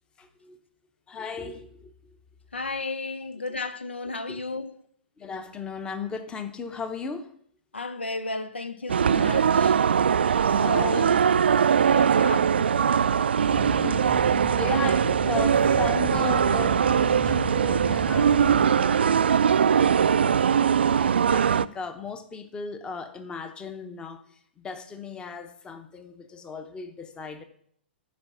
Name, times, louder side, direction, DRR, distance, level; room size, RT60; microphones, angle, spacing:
voice 1, 0.2-0.6 1.1-1.9 4.3-4.4 5.2-7.3 10.2-11.2 12.5-12.7 13.7-20.3 20.9-27.4, left 4 dB, 15° left, 0.9 m, -37 dB
voice 2, 2.5-4.7 7.7-9.8 10.4-11.2 11.9-12.5, left 3 dB, 80° left, 0.7 m, -33 dB
sound 1, 8.9-21.7, right 7 dB, 70° right, 0.3 m, -21 dB
sound 2, 13.5-18.7, left 3 dB, 35° left, 2.0 m, -37 dB
9.5 x 5.5 x 6.1 m
figure-of-eight pair, 115°, 6 cm